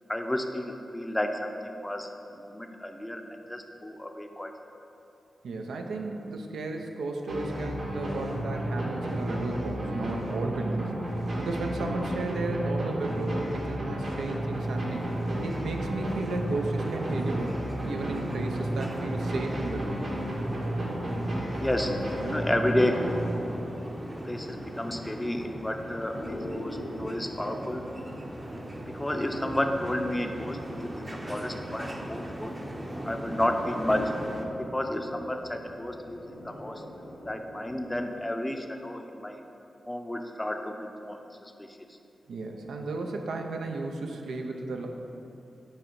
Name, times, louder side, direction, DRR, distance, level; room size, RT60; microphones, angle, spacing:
voice 1, 0.1-2.1 2.4-4.5 21.6-23.1 24.2-27.9 28.9-32.5 33.0-34.1 34.6-36.8 37.2-39.4 39.9-41.8, left 1 dB, 15° left, 5 dB, 0.5 m, -31 dB
voice 2, 5.4-11.1 11.4-15.1 15.4-17.5 17.8-19.9 42.3-44.9, right 2 dB, 85° right, 3 dB, 0.4 m, -34 dB
sound 1, 7.3-23.8, right 1 dB, 70° right, 1.5 m, -32 dB
sound 2, 14.5-34.4, right 1 dB, 25° right, 0.6 m, -40 dB
sound 3, 19.7-38.1, left 1 dB, 75° left, 0.7 m, -45 dB
7.0 x 2.8 x 5.1 m, 2.8 s
cardioid pair, 50°, 0 cm